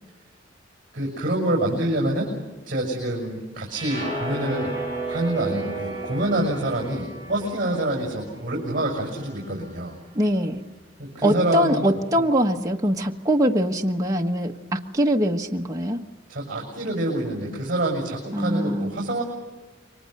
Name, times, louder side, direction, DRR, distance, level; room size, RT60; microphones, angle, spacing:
voice 1, 0.9-2.3 2.6-4.7 5.1-9.9 11.0-11.8 16.3-19.2, right 1 dB, 45° right, 0 dB, 6.7 m, -26 dB
sound 1, 3.7-10.0, right 2 dB, 30° left, 7.1 m, -34 dB
voice 2, 10.1-10.6 11.2-16.0 18.3-18.9, equal, 20° right, 1 dB, 1.3 m, -23 dB
28.5 x 24.0 x 6.6 m, 1.3 s
head